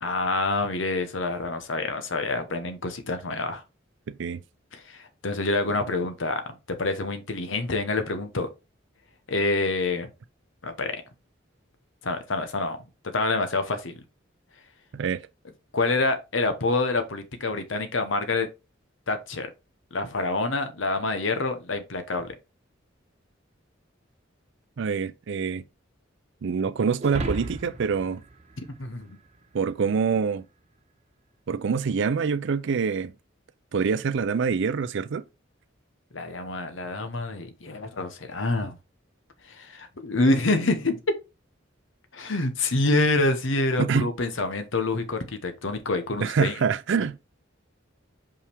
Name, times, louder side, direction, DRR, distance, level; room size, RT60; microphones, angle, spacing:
voice 1, 0.0-3.6 4.7-6.4 6.8-8.5 9.3-10.1 10.6-11.0 12.0-12.8 13.1-14.0 15.7-18.5 19.1-19.5 19.9-22.3 28.8-29.2 36.1-38.8 39.4-41.0 42.1-46.5, left 2 dB, 70° left, 1.0 m, -27 dB
voice 2, 4.1-4.4 14.9-15.2 24.8-25.6 26.4-28.2 29.5-30.4 31.5-33.1 33.7-35.2 43.8-44.1 46.2-47.2, right 5 dB, 65° right, 0.4 m, -25 dB
sound 1, 27.0-29.5, right 2 dB, 35° right, 1.1 m, -35 dB
5.6 x 4.9 x 3.4 m
head